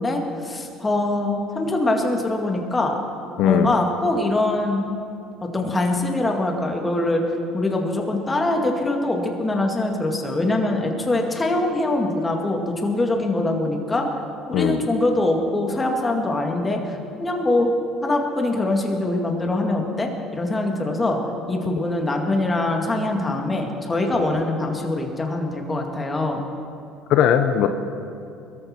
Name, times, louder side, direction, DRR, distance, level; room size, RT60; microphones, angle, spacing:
voice 1, 0.0-3.0 3.4-4.9 5.4-7.2 7.5-14.1 14.5-17.7 18.0-21.2 21.5-26.4 27.6-27.7, left 2 dB, 20° left, 2 dB, 2.2 m, -23 dB
voice 2, 3.4-3.7 14.5-14.8 24.1-24.3 27.1-27.7, left 9 dB, 70° left, 7 dB, 0.8 m, -19 dB
21.5 x 13.5 x 4.5 m, 2.7 s
cardioid pair, 105°, 0 cm